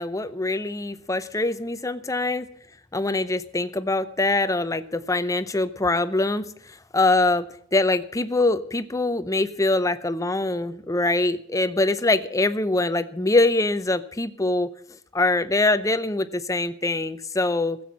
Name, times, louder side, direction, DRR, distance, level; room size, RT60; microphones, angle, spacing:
voice 1, 0.0-2.5 2.9-7.5 7.7-14.7 15.1-17.8, left 2 dB, 15° left, 13 dB, 0.7 m, -23 dB
15.5 x 7.9 x 8.4 m, 0.63 s
head